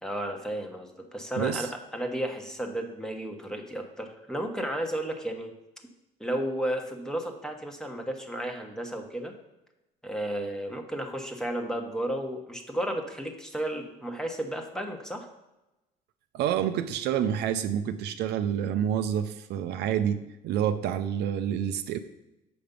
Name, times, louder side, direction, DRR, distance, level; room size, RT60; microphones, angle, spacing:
voice 1, 0.0-5.5 6.2-9.3 10.0-15.3, right 1 dB, 5° left, 3 dB, 1.1 m, -33 dB
voice 2, 1.3-1.7 16.3-22.0, right 9 dB, 75° right, 9 dB, 0.5 m, -28 dB
7.0 x 5.1 x 5.3 m, 0.97 s
cardioid pair, 110°, 17 cm